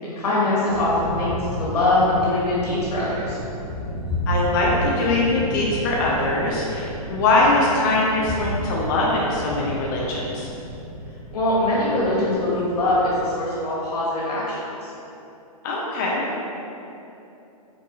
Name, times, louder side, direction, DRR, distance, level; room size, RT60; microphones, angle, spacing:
voice 1, 0.0-3.4 11.3-14.6 14.8-14.9, left 1 dB, 80° left, -7 dB, 1.3 m, -22 dB
sound 1, 0.7-13.2, equal, 50° right, 1.4 m, -32 dB
voice 2, 4.3-10.5 15.6-16.4, left 2 dB, 30° left, -4 dB, 0.4 m, -22 dB
3.9 x 2.3 x 2.7 m, 2.9 s
hypercardioid pair, 155°, 20 cm